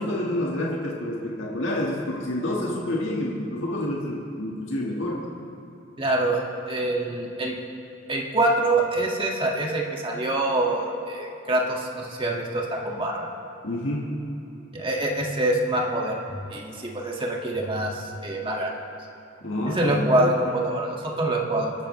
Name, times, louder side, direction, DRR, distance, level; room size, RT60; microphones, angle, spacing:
voice 1, 0.0-5.3 13.6-14.2 19.4-20.3, left 1 dB, 75° left, -3 dB, 1.7 m, -28 dB
voice 2, 6.0-7.6 8.1-13.3 14.7-18.7 19.6-21.7, right 1 dB, 25° right, -1 dB, 1.9 m, -25 dB
24.5 x 13.0 x 3.2 m, 2.9 s
head